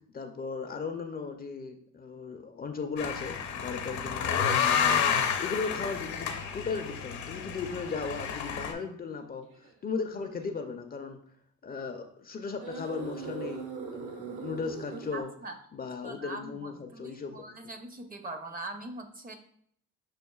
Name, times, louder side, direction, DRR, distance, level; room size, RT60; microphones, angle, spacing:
voice 1, 0.1-11.2 11.6-15.3 15.7-17.4, left 5 dB, 30° left, 5 dB, 0.4 m, -37 dB
sound 1, 3.0-8.7, left 7 dB, 70° left, 0.7 m, -30 dB
sound 2, 5.7-5.9 6.6-6.7 8.2-8.4 9.4-9.7 10.3-10.5 12.6-15.2, right 4 dB, 75° right, 1.1 m, -40 dB
voice 2, 15.1-15.5 16.0-19.3, right 2 dB, 30° right, 6 dB, 0.5 m, -42 dB
6.3 x 2.5 x 2.3 m, 0.64 s
cardioid pair, 90°, 30 cm